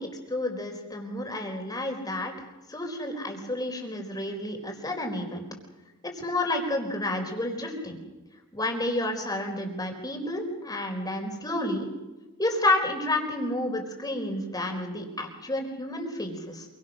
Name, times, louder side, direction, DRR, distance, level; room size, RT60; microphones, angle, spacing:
voice 1, 0.0-2.3 2.7-5.5 6.0-8.0 8.5-11.9 12.4-16.7, left 1 dB, 20° left, 3 dB, 4.4 m, -30 dB
27.5 x 23.5 x 6.4 m, 1.2 s
head